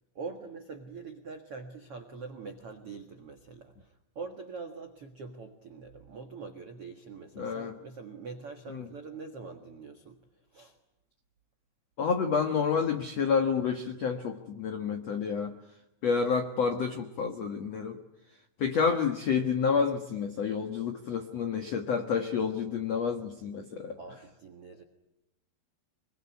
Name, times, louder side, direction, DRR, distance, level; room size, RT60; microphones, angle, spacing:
voice 1, 0.1-10.2 10.5-10.7 24.0-24.8, right 4 dB, 85° right, 5 dB, 1.2 m, -44 dB
voice 2, 7.4-7.7 8.7-8.9 12.0-15.5 16.0-18.0 18.6-24.0, left 6 dB, 85° left, 6 dB, 1.4 m, -29 dB
26.0 x 23.0 x 9.6 m, 0.87 s
omnidirectional pair, 5.5 m